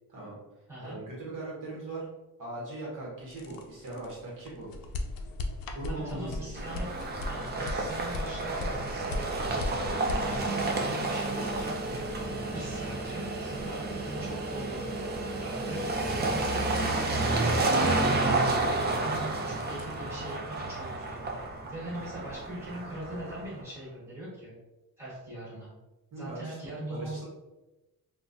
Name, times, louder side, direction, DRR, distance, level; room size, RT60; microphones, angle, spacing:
voice 1, 0.8-2.1 2.4-4.7 5.7-6.6 26.1-27.2, right 2 dB, 60° right, -5 dB, 1.1 m, -39 dB
sound 1, 3.2-19.0 19.3-20.0, left 2 dB, 70° left, 0.5 m, -39 dB
voice 2, 5.9-6.9 7.2-9.9 10.2-14.8 15.4-21.4 21.7-24.5 25.0-25.7 26.2-27.3, right 1 dB, 5° right, -9 dB, 1.4 m, -41 dB
sound 2, 6.6-23.5, right 2 dB, 30° right, 0.4 m, -30 dB
3.8 x 2.3 x 2.5 m, 1.0 s
wide cardioid pair, 175°, 35 cm